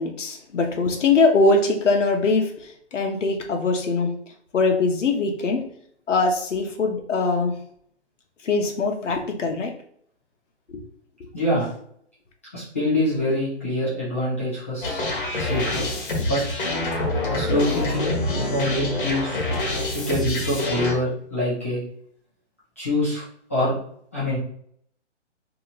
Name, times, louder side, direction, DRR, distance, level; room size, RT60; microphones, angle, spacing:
voice 1, 0.0-2.6 2.9-4.2 4.5-5.6 6.1-7.6 8.4-9.7 10.7-10.8, left 3 dB, 90° left, 2 dB, 0.9 m, -22 dB
voice 2, 11.3-11.7 12.5-15.0 15.4-15.9 16.3-16.4 17.3-19.5 19.9-21.8 22.8-23.2 23.5-23.8 24.1-24.4, left 1 dB, 10° left, -11 dB, 0.6 m, -25 dB
sound 1, 14.8-20.9, left 2 dB, 45° left, 1.2 m, -26 dB
2.9 x 2.8 x 3.8 m, 0.64 s
hypercardioid pair, 175°, 35 cm